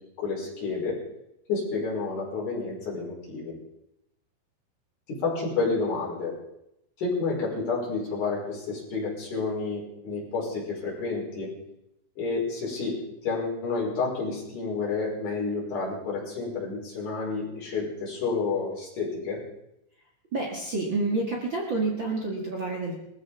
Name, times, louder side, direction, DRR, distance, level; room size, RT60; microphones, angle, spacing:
voice 1, 0.2-1.0 1.5-3.5 5.1-6.3 7.0-11.5 12.2-19.4, left 4 dB, 45° left, -5 dB, 6.4 m, -30 dB
voice 2, 20.3-22.9, right 3 dB, 50° right, -2 dB, 1.4 m, -28 dB
20.0 x 14.5 x 3.7 m, 0.81 s
omnidirectional pair, 5.3 m